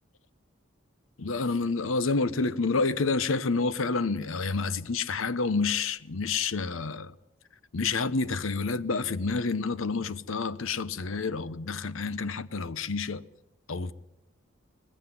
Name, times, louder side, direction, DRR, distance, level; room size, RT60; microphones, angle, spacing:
voice 1, 1.2-7.1 7.7-13.2 13.7-13.9, left 4 dB, 85° left, 0.9 m, -29 dB
20.0 x 16.0 x 9.4 m
head